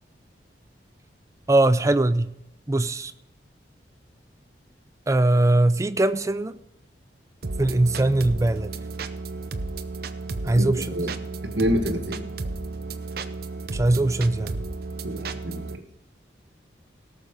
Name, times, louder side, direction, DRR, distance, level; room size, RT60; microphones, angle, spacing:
voice 1, 1.5-2.3 2.7-3.1 5.1-6.5 7.6-8.7 10.4-11.1 13.7-14.6, right 2 dB, 15° right, 0.4 m, -21 dB
sound 1, 7.4-15.8, right 3 dB, 55° right, 0.7 m, -33 dB
voice 2, 10.5-11.1 11.4-12.2 15.0-15.8, equal, 75° right, 1.6 m, -27 dB
17.5 x 6.7 x 5.2 m
head